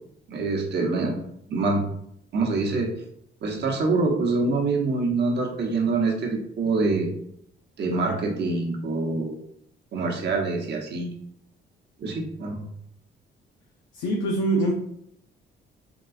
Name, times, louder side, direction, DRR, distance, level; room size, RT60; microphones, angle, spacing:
voice 1, 0.3-1.2 1.5-1.8 2.3-2.9 3.4-7.1 7.8-9.3 9.9-11.1 12.0-12.6, right 3 dB, 60° right, 0 dB, 0.9 m, -25 dB
voice 2, 13.9-14.7, right 1 dB, 90° left, 0 dB, 0.5 m, -23 dB
3.6 x 2.3 x 2.3 m, 0.71 s
cardioid pair, 90°, 20 cm